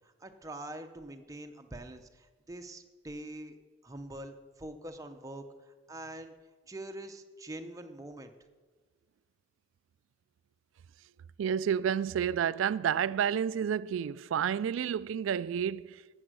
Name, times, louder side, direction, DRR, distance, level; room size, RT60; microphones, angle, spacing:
voice 1, 0.0-3.6 3.8-6.3 6.7-8.3, right 1 dB, 15° right, 0.7 m, -44 dB
voice 2, 11.4-16.0, right 8 dB, 80° right, 0.3 m, -30 dB
12.5 x 8.1 x 6.2 m
head